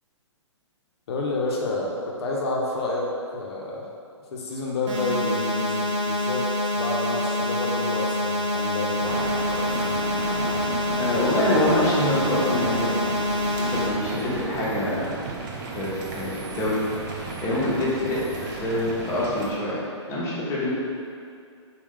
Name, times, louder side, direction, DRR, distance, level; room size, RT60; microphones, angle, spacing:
voice 1, 1.1-3.9 4.3-9.1 17.5-17.6, left 2 dB, 55° left, -2 dB, 0.7 m, -29 dB
sound 1, 4.9-13.9, left 1 dB, 70° right, 0.9 m, -26 dB
sound 2, 9.0-19.5, right 3 dB, 40° right, 0.5 m, -34 dB
voice 2, 11.0-15.0 15.7-16.8 17.1-19.8 20.1-20.7, left 1 dB, 15° left, -7 dB, 0.8 m, -26 dB
3.4 x 2.3 x 3.6 m, 2.4 s
hypercardioid pair, 135°, 16 cm